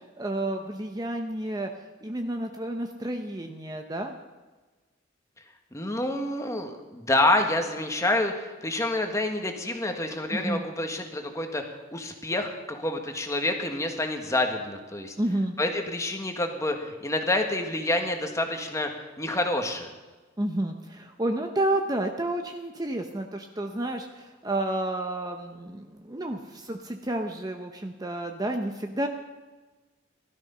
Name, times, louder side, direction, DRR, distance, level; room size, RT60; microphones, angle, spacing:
voice 1, 0.2-1.7 2.0-4.1 10.3-10.7 15.2-15.6 20.4-29.1, right 1 dB, 20° right, 4 dB, 0.8 m, -30 dB
voice 2, 5.7-11.6 11.9-15.1 15.6-18.9 19.2-19.9, left 1 dB, 15° left, 4 dB, 1.5 m, -28 dB
16.5 x 13.0 x 5.6 m, 1.3 s
head